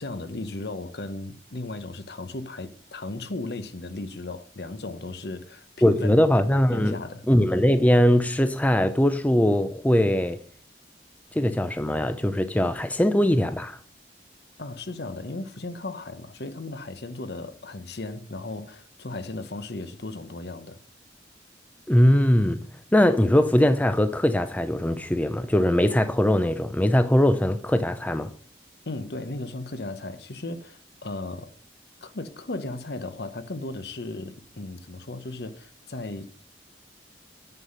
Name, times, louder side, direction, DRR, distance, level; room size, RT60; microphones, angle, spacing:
voice 1, 0.0-6.3 6.7-7.3 14.6-20.8 28.9-31.5 32.0-36.3, left 2 dB, 60° left, 0.9 m, -36 dB
voice 2, 5.8-7.0 7.3-10.4 11.3-13.8 21.9-22.6 22.9-28.3, left 1 dB, 10° left, 0.5 m, -21 dB
9.2 x 5.8 x 5.4 m
head